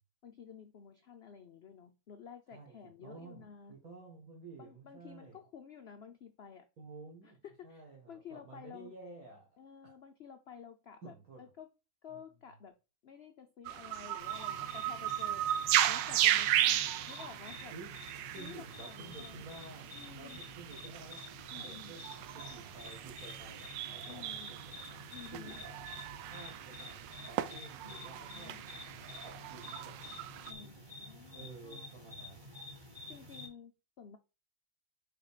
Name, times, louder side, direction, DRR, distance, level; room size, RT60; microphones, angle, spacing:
voice 1, 0.2-3.7 4.6-6.7 7.2-8.9 9.6-11.7 12.0-12.7 13.0-15.5 15.9-17.7 18.4-19.6 19.9-20.4 21.5-22.0 24.1-24.6 25.1-25.6 27.8-28.7 30.5-31.9 33.1-34.2, left 7 dB, 85° left, 0.5 m, -52 dB
voice 2, 3.0-5.4 6.8-9.5 9.8-9.9 11.0-11.4 17.7-18.0 18.3-25.8 26.1-30.7 31.3-32.5, right 3 dB, 55° right, 2.2 m, -52 dB
sound 1, 13.7-30.5, right 12 dB, 85° right, 1.3 m, -36 dB
sound 2, 14.2-33.5, left 2 dB, 15° right, 1.5 m, -50 dB
6.0 x 4.7 x 4.9 m
omnidirectional pair, 1.9 m